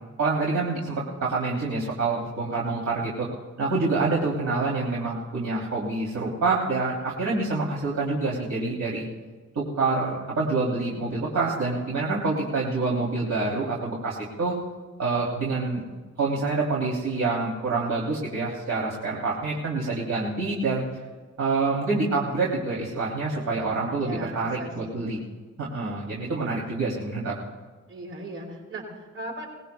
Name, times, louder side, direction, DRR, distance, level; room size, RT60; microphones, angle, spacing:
voice 1, 0.2-3.3 3.6-9.0 9.5-14.6 15.0-15.8 16.2-20.8 21.4-25.2 25.6-27.3, right 3 dB, 60° right, -4 dB, 3.2 m, -27 dB
voice 2, 23.4-25.0 26.1-26.9 27.9-29.5, right 1 dB, 40° right, 0 dB, 5.7 m, -39 dB
22.5 x 20.0 x 2.3 m, 1.4 s
wide cardioid pair, 165°, 30 cm